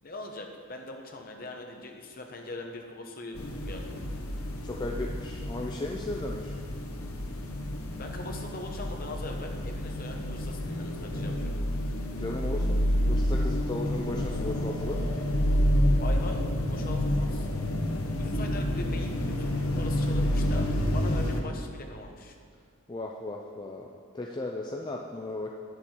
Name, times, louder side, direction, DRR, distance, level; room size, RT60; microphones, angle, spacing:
voice 1, 0.0-4.0 8.0-11.5 16.0-17.5 18.1-20.7 20.9-22.4, left 2 dB, 40° left, 2 dB, 0.9 m, -41 dB
sound 1, 3.4-21.4, left 1 dB, 85° left, 0.9 m, -29 dB
voice 2, 4.6-6.6 12.1-15.1 22.9-25.5, left 2 dB, 20° left, -1 dB, 0.4 m, -36 dB
9.7 x 7.0 x 4.4 m, 2.1 s
head